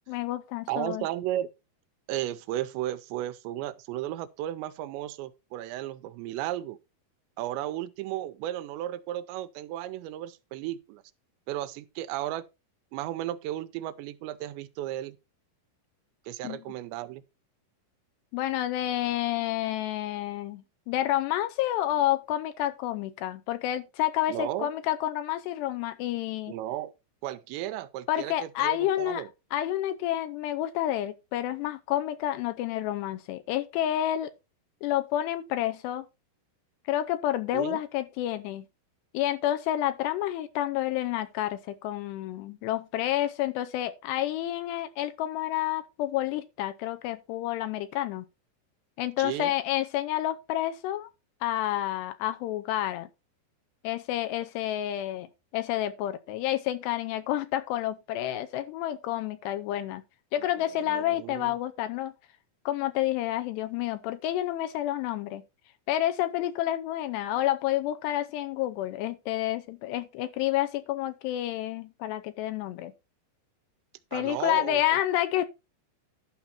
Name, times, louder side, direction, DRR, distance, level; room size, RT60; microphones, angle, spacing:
voice 1, 0.1-1.1 16.4-16.6 18.3-26.5 28.1-29.2 29.5-34.3 34.8-36.1 36.9-38.7 39.1-48.3 49.0-51.1 51.4-53.1 53.8-55.3 55.5-60.0 60.3-62.1 62.7-65.4 65.9-72.9 74.1-75.5, left 13 dB, 80° left, 2.7 m, -29 dB
voice 2, 0.7-1.5 2.1-6.8 7.4-11.0 11.5-12.4 12.9-15.2 16.3-17.2 24.3-24.7 26.5-26.9 27.2-29.3 37.5-37.8 49.2-49.5 60.8-61.5 74.1-74.8, right 13 dB, 90° right, 3.0 m, -34 dB
11.5 x 5.9 x 4.2 m
omnidirectional pair, 5.0 m